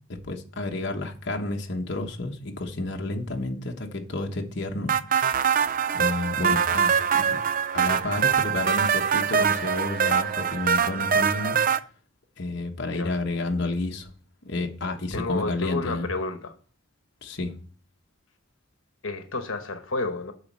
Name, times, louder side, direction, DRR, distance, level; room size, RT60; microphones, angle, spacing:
voice 1, 0.1-4.9 5.9-7.4 7.7-11.6 12.4-14.1 14.4-16.1 17.2-17.5, left 2 dB, 60° left, 1.2 m, -30 dB
sound 1, 4.9-11.8, right 7 dB, 45° right, 0.4 m, -23 dB
voice 2, 15.1-16.5 19.0-20.3, left 3 dB, 85° left, 1.1 m, -30 dB
9.5 x 4.1 x 7.5 m
head